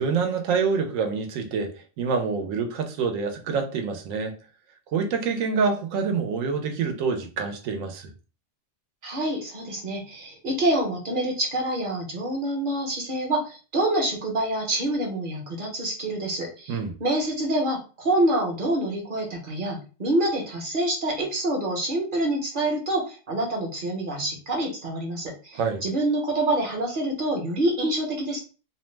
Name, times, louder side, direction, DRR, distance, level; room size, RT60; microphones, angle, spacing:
voice 1, 0.0-4.3 4.9-8.1 16.7-16.9 25.5-25.8, right 5 dB, 85° right, 1.0 m, -26 dB
voice 2, 9.0-28.4, right 1 dB, 45° right, 0.9 m, -26 dB
2.6 x 2.0 x 3.1 m
omnidirectional pair, 1.4 m